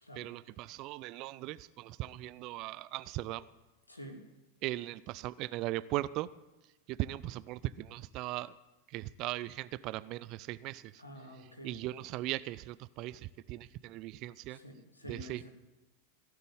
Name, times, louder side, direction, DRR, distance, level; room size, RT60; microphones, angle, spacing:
voice 1, 0.2-3.5 4.6-6.3 6.9-8.5 8.9-10.9 11.6-14.6 15.0-15.5, right 16 dB, 40° right, 18 dB, 0.5 m, -38 dB
voice 2, 11.0-11.8 14.5-15.5, equal, 80° left, 2 dB, 2.8 m, -48 dB
16.0 x 6.8 x 8.8 m, 1.0 s
figure-of-eight pair, 90°, 0 cm